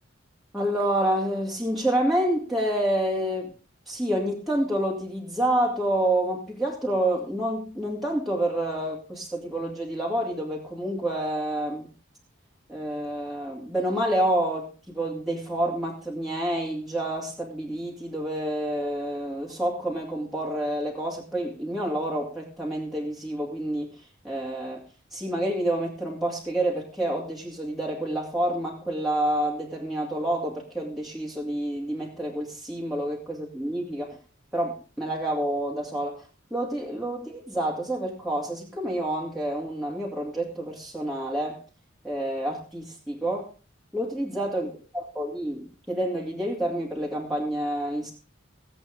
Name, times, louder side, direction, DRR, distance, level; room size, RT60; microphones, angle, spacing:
voice 1, 0.5-3.5 3.9-11.9 12.7-23.9 24.2-24.8 25.1-34.2 34.5-36.2 36.5-41.6 42.0-43.5 43.9-44.7 45.2-48.1, right 1 dB, ahead, -4 dB, 2.7 m, -28 dB
17.5 x 8.0 x 5.2 m, 0.34 s
head